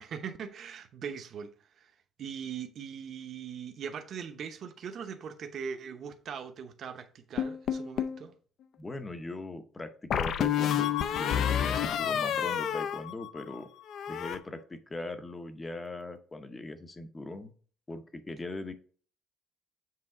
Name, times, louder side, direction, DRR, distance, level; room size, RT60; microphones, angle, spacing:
voice 1, 0.0-1.5 1.8-1.9 2.2-8.3 12.0-12.7, right 7 dB, 45° right, 0.9 m, -41 dB
sound 1, 7.4-8.2 10.1-13.6 13.9-14.4, left 9 dB, 50° left, 0.5 m, -29 dB
voice 2, 8.8-13.7 14.1-17.5 17.9-18.7, left 2 dB, 15° left, 0.7 m, -40 dB
7.6 x 3.5 x 4.8 m
cardioid pair, 170°, 0 cm